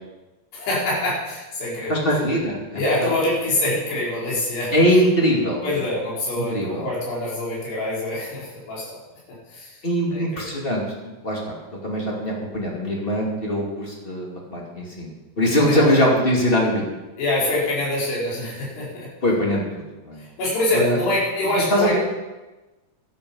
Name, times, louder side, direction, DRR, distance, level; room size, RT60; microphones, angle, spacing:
voice 1, 0.5-2.1 2.7-4.7 5.6-9.0 9.3-9.7 10.1-10.2 15.7-15.9 17.2-19.1 20.2-22.0, left 1 dB, 85° left, -6 dB, 6.5 m, -25 dB
voice 2, 1.9-3.1 4.7-5.8 6.4-6.8 9.8-11.5 11.8-15.1 15.4-16.8 19.2-20.2 20.7-21.0 21.5-22.0, equal, 20° left, -2 dB, 1.9 m, -22 dB
12.5 x 11.5 x 5.5 m, 1.1 s
omnidirectional pair, 4.7 m